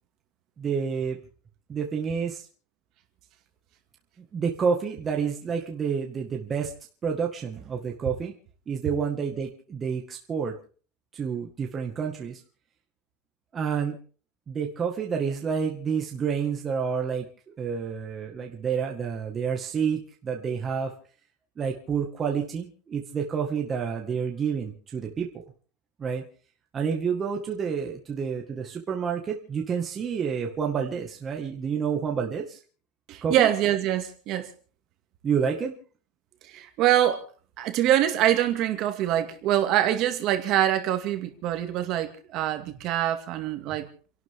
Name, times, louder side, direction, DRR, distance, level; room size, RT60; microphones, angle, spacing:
voice 1, 0.6-1.2 1.7-2.4 4.3-6.7 7.0-8.3 8.7-10.5 11.1-12.4 13.5-14.0 14.5-20.9 21.6-25.4 26.0-26.2 26.7-32.6 33.2-33.5 35.2-35.7, right 6 dB, 20° right, 1.9 m, -29 dB
voice 2, 33.1-34.5 36.5-37.2 37.6-43.9, right 12 dB, 40° right, 2.3 m, -24 dB
30.0 x 12.0 x 3.8 m
supercardioid pair, 170°, 0 cm